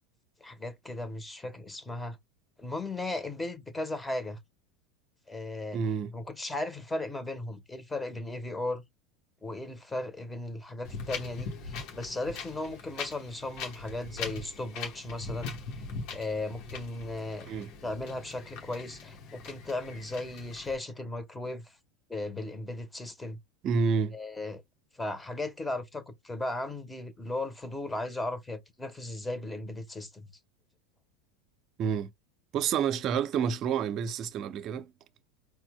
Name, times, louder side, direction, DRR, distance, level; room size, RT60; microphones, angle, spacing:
voice 1, 0.4-2.2 2.6-4.4 5.3-5.8 6.1-8.8 9.4-15.5 16.1-17.5 17.8-21.7 22.1-23.4 24.1-24.6 24.9-30.3, left 2 dB, 10° left, 1.0 m, -36 dB
voice 2, 5.7-6.1 17.5-17.7 23.6-24.1 31.8-32.1 32.5-34.9, right 6 dB, 45° right, 0.6 m, -29 dB
Wind, 10.8-20.8, left 4 dB, 50° left, 1.1 m, -41 dB
4.3 x 2.2 x 2.2 m
hypercardioid pair, 90°, 0 cm